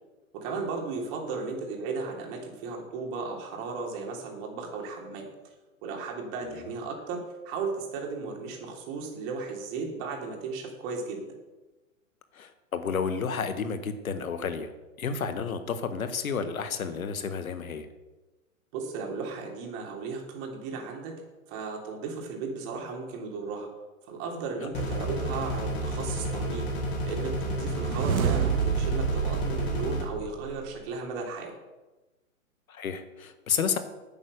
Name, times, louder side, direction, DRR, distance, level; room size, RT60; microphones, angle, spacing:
voice 1, 0.3-5.3 5.8-11.3 18.7-21.1 21.5-23.7 24.1-26.7 27.0-31.5, right 4 dB, 40° right, 1 dB, 3.4 m, -35 dB
voice 2, 12.3-14.7 15.0-17.9 32.7-33.8, left 6 dB, 75° left, 10 dB, 1.6 m, -31 dB
sound 1, 24.7-30.0, right 1 dB, 25° left, 4.4 m, -31 dB
sound 2, 27.5-30.8, right 7 dB, 80° right, 1.1 m, -29 dB
9.8 x 8.7 x 6.6 m, 1.1 s
hypercardioid pair, 120°, 42 cm